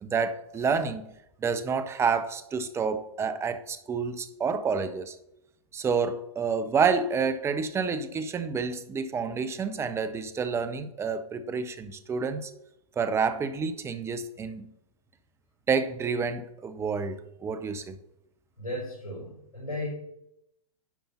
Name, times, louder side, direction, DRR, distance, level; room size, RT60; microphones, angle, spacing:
voice 1, 0.0-1.1 1.4-5.2 5.7-12.5 13.0-14.7 15.7-18.0, right 5 dB, 15° right, 0.8 m, -29 dB
voice 2, 18.6-19.9, left 1 dB, 80° left, 4.5 m, -35 dB
10.5 x 5.5 x 5.6 m
figure-of-eight pair, 110°, 18 cm